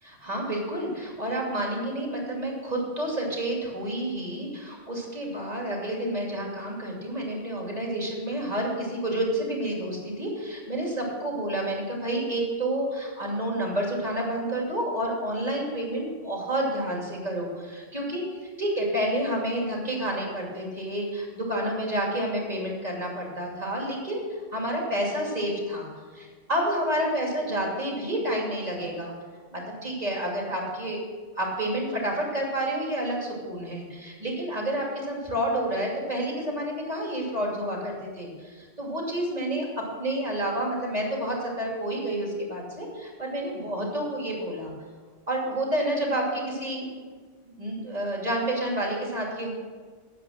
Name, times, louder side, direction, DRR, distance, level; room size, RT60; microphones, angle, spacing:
voice 1, 0.0-18.2 18.6-24.2 24.5-25.9 26.1-29.1 29.5-31.0 31.3-39.7 40.0-44.7 45.3-47.0 47.4-49.5, right 1 dB, 35° right, -2 dB, 2.7 m, -29 dB
9.8 x 7.4 x 7.3 m, 1.5 s
omnidirectional pair, 1.1 m